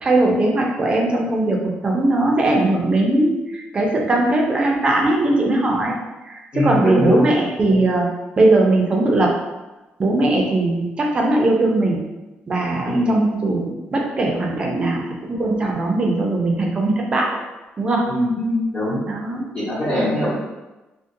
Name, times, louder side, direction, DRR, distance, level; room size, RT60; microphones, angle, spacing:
voice 1, 0.0-5.9 6.2-8.1 8.4-9.4 10.0-12.1 12.5-17.4 17.8-18.1 19.1-19.5, right 2 dB, 30° right, -1 dB, 0.4 m, -19 dB
voice 2, 6.5-7.3 12.9-13.2 18.1-19.0 19.5-20.3, left 1 dB, 40° left, -13 dB, 1.0 m, -21 dB
2.6 x 2.1 x 2.6 m, 1.1 s
cardioid pair, 155°, 4 cm